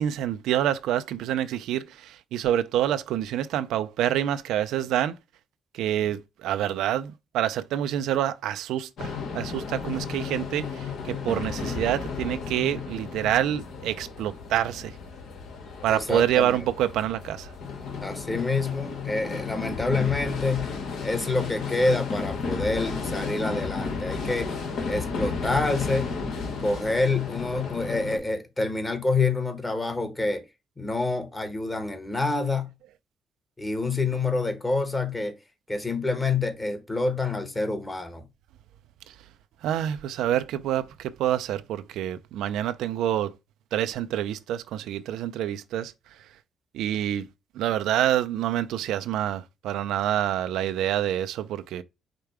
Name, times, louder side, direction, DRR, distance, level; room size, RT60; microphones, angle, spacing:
voice 1, 0.0-5.2 5.7-14.9 15.8-17.5 39.6-43.3 43.7-45.9 46.7-47.3 47.6-51.8, right 11 dB, 85° right, 0.4 m, -27 dB
sound 1, 9.0-28.2, left 5 dB, 75° left, 1.3 m, -33 dB
voice 2, 15.9-16.6 18.0-20.7 21.0-24.5 24.9-26.1 26.6-30.4 30.8-32.7 33.6-35.3 35.7-38.2, left 3 dB, 20° left, 1.1 m, -27 dB
5.0 x 2.2 x 4.6 m
cardioid pair, 90°, 0 cm